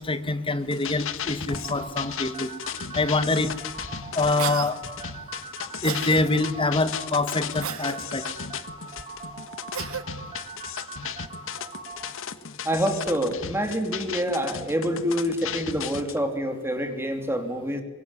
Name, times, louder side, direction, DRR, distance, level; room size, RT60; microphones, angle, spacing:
voice 1, 0.0-2.5 2.9-3.5 4.1-4.8 5.8-8.2, left 2 dB, 25° left, 11 dB, 1.6 m, -25 dB
sound 1, 0.6-16.2, left 8 dB, 65° left, 1.4 m, -36 dB
sound 2, 1.5-12.1, right 4 dB, 30° right, 4.5 m, -41 dB
Cough, 4.4-4.7 5.8-6.2 7.6-8.0 9.7-10.0, right 8 dB, 75° right, 1.6 m, -32 dB
voice 2, 12.6-17.8, equal, 10° right, 6 dB, 3.0 m, -27 dB
24.5 x 22.0 x 9.9 m, 1.1 s
head